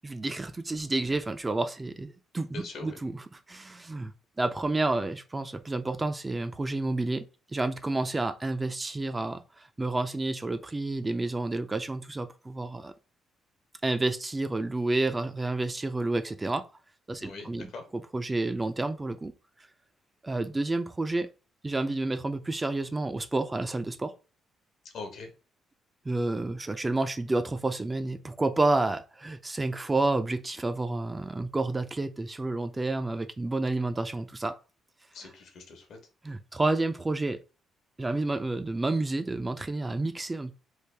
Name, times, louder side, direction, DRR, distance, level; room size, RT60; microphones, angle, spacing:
voice 1, 0.0-4.1 4.4-7.3 7.5-12.9 13.8-16.6 17.1-17.7 17.9-19.3 20.2-21.3 21.6-24.1 26.1-34.6 35.2-35.3 36.2-37.4 38.0-40.5, right 2 dB, 20° right, 0.3 m, -30 dB
voice 2, 2.5-3.0 17.2-17.8 24.9-25.3 35.1-36.0, left 3 dB, 70° left, 1.0 m, -42 dB
3.2 x 2.4 x 3.3 m
cardioid pair, 90°, 0 cm